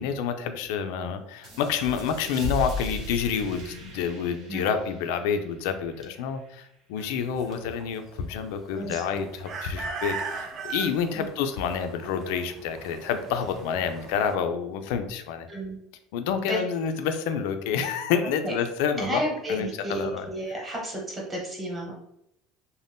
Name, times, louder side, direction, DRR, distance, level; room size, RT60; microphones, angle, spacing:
voice 1, 0.0-15.5 16.1-19.2 19.5-20.3, left 7 dB, 80° left, 8 dB, 0.3 m, -28 dB
sound 1, 1.4-6.7, left 2 dB, 60° right, 0.9 m, -37 dB
sound 2, 7.0-14.3, right 4 dB, 35° right, 0.4 m, -38 dB
voice 2, 8.7-9.2 11.1-11.3 15.5-15.8 16.4-16.6 18.4-18.5 19.0-21.9, right 1 dB, 15° right, -3 dB, 0.9 m, -32 dB
2.6 x 2.1 x 3.4 m, 0.79 s
cardioid pair, 150°, 0 cm